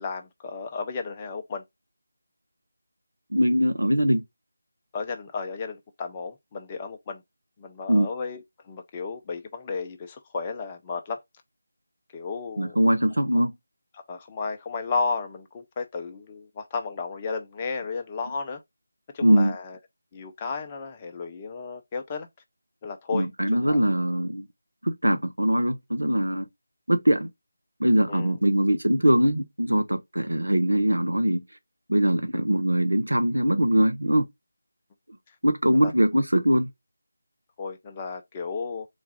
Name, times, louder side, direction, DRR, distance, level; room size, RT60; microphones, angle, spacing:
voice 1, 0.0-1.6 4.9-7.2 7.6-11.2 12.1-12.8 14.1-18.6 19.1-19.8 20.1-22.3 22.8-23.8 28.1-28.4 35.7-35.9 37.6-38.9, left 4 dB, 20° left, 0.4 m, -33 dB
voice 2, 3.3-4.2 7.9-8.1 12.6-13.6 19.2-19.6 23.1-24.5 24.8-26.5 26.9-27.3 27.8-31.4 31.9-34.3 35.4-36.7, equal, 80° right, 0.7 m, -22 dB
3.9 x 2.3 x 4.5 m
figure-of-eight pair, 160°, 0 cm